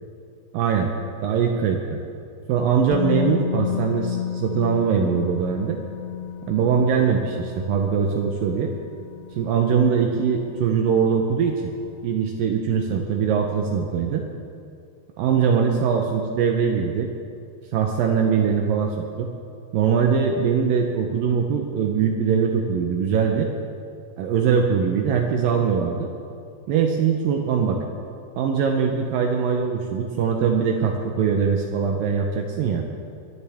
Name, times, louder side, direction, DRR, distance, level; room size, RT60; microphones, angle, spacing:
voice 1, 0.5-0.9 1.2-2.0 2.5-5.8 6.5-8.7 9.4-11.7 12.0-14.2 15.2-17.1 17.7-19.3 19.7-23.5 24.2-26.1 26.7-27.8 28.4-32.9, right 6 dB, 90° right, 2 dB, 2.0 m, -22 dB
Musical instrument, 2.9-10.8 11.1-11.3, left 10 dB, 80° left, 2.7 m, -32 dB
22.0 x 13.0 x 3.5 m, 2.5 s
omnidirectional pair, 5.1 m